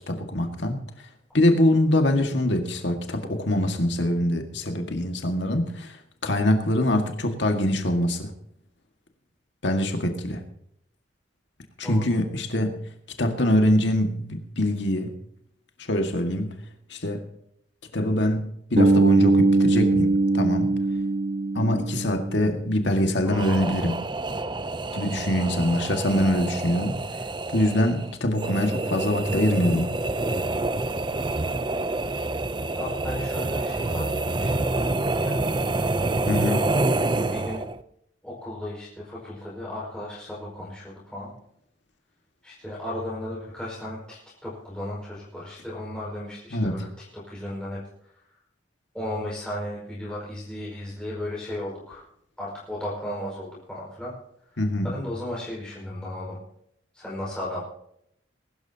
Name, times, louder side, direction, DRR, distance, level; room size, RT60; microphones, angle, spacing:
voice 1, 0.1-0.8 1.3-6.0 6.2-8.3 9.6-10.4 11.8-12.7 13.2-15.1 15.9-16.5 16.9-17.2 17.9-20.7 21.5-24.0 24.9-27.0 27.5-29.9 36.3-36.6 46.5-46.8 54.6-54.9, left 1 dB, 70° left, 5 dB, 1.9 m, -24 dB
voice 2, 11.8-12.1 25.4-25.7 32.7-34.7 35.2-35.7 37.3-37.7 38.2-41.3 42.4-48.1 48.9-52.0 52.4-54.1 54.5-54.6 54.9-56.4 56.9-57.6, left 1 dB, 5° left, -7 dB, 5.3 m, -35 dB
Bass guitar, 18.8-22.7, right 2 dB, 55° right, 1.2 m, -21 dB
sound 1, 23.2-37.8, right 2 dB, 25° right, 0.6 m, -27 dB
22.0 x 12.5 x 2.9 m, 0.73 s
head